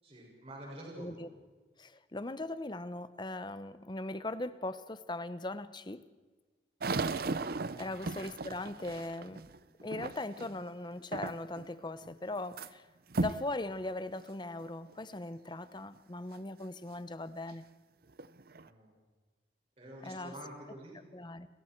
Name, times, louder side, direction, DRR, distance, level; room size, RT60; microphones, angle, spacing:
voice 1, 0.0-1.2 7.8-7.9 18.5-18.9 19.8-21.0, right 1 dB, 35° right, 6.5 m, -48 dB
voice 2, 1.0-1.3 1.8-6.0 7.8-9.4 9.8-12.9 13.1-17.6 20.0-20.4 21.1-21.5, left 2 dB, 25° left, 0.9 m, -39 dB
sound 1, 6.8-10.6 11.1-11.7 12.0-12.7 13.1-13.5 14.1-14.2 14.9-15.0 17.5-17.6 18.1-18.7, right 3 dB, 55° right, 0.7 m, -36 dB
30.0 x 21.5 x 4.6 m
head